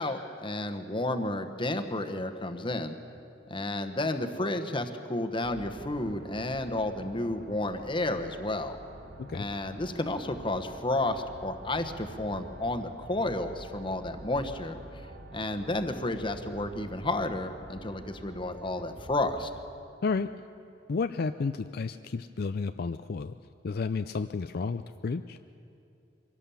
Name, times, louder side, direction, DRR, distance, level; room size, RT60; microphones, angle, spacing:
voice 1, 0.0-3.0 3.5-8.8 9.3-14.8 15.3-19.5, left 2 dB, 30° left, 7 dB, 1.1 m, -31 dB
sound 1, 5.4-19.6, right 1 dB, 55° right, 1.4 m, -48 dB
voice 2, 20.9-23.3 23.6-25.4, left 4 dB, 55° left, 9 dB, 0.4 m, -31 dB
23.5 x 17.0 x 7.1 m, 2.6 s
head